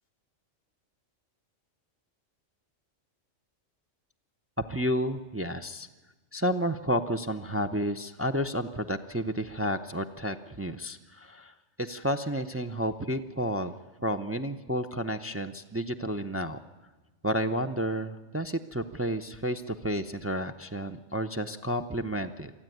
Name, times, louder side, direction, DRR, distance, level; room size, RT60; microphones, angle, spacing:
voice 1, 4.6-5.9 6.3-13.7 14.0-16.6 17.2-22.5, equal, 20° right, 6 dB, 0.4 m, -31 dB
23.5 x 14.0 x 9.2 m, 1.2 s
omnidirectional pair, 1.3 m